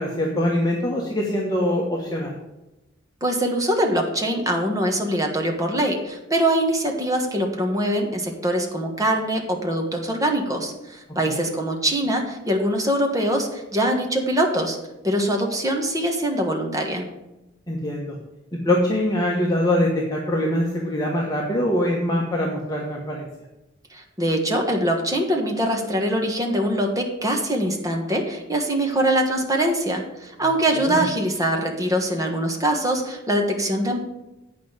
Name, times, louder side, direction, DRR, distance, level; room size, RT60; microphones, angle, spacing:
voice 1, 0.0-2.4 11.2-11.4 17.7-18.2 18.5-23.3 30.7-31.0, left 1 dB, 20° left, -2 dB, 1.2 m, -23 dB
voice 2, 3.2-14.8 15.0-17.1 23.9-34.0, right 1 dB, 20° right, 2 dB, 1.4 m, -23 dB
8.5 x 5.2 x 7.3 m, 0.96 s
head